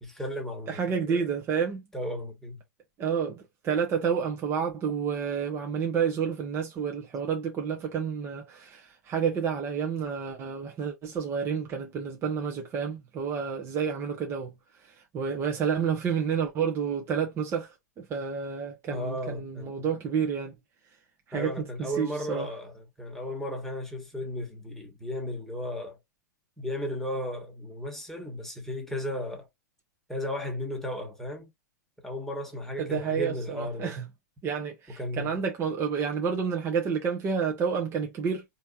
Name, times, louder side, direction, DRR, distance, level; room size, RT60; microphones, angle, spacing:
voice 1, 0.0-1.3 1.9-2.6 18.9-19.9 21.3-26.0 26.6-29.5 30.1-31.5 32.0-34.0 35.0-35.4, equal, 5° left, 1.5 m, -35 dB
voice 2, 0.7-1.8 3.0-14.5 14.8-20.6 21.3-22.5 32.8-34.1 34.4-38.4, right 6 dB, 25° right, 1.0 m, -30 dB
4.4 x 2.9 x 2.4 m
figure-of-eight pair, 105°, 10 cm